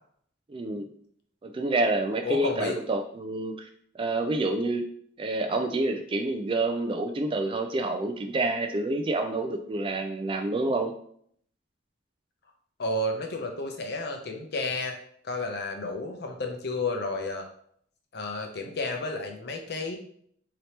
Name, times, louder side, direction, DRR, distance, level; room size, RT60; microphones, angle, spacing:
voice 1, 0.5-0.9 1.4-3.7 3.9-4.8 5.2-10.9, right 2 dB, 30° right, 5 dB, 0.3 m, -28 dB
voice 2, 2.2-2.8 12.8-15.0 15.2-17.5 18.1-20.0, left 2 dB, 55° left, 3 dB, 0.6 m, -31 dB
3.2 x 2.8 x 2.8 m, 0.64 s
head